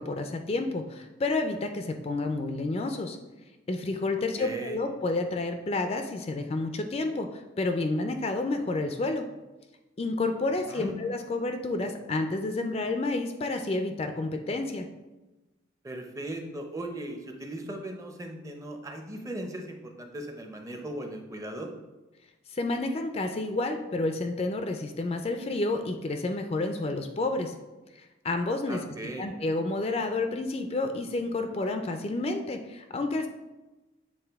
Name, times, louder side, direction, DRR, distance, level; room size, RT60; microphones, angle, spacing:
voice 1, 0.0-3.2 3.7-9.2 10.0-14.9 22.5-27.5 27.9-28.8 29.2-33.3, left 2 dB, 30° left, 6 dB, 0.3 m, -30 dB
voice 2, 4.4-4.8 10.7-10.9 15.8-21.7 28.7-29.3, right 1 dB, 15° right, 3 dB, 0.5 m, -38 dB
7.7 x 3.6 x 3.4 m, 1.1 s
head